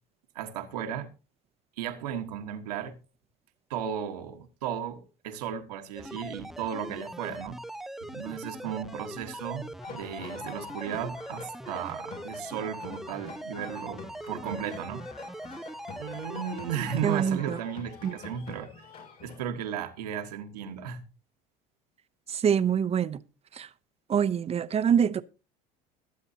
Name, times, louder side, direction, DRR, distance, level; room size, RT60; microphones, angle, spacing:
voice 1, 0.3-1.1 1.8-2.9 3.7-7.6 8.0-15.1 16.0-18.9 19.2-21.0, right 9 dB, 90° right, 1.5 m, -35 dB
sound 1, 5.9-17.3, right 1 dB, ahead, 0.5 m, -41 dB
sound 2, 9.8-19.4, left 5 dB, 50° left, 6.9 m, -46 dB
voice 2, 17.0-17.6 18.0-18.2 22.3-23.2 23.5-23.7 24.1-25.2, right 8 dB, 30° right, 0.7 m, -25 dB
21.5 x 7.8 x 2.8 m
supercardioid pair, 85°, 20 cm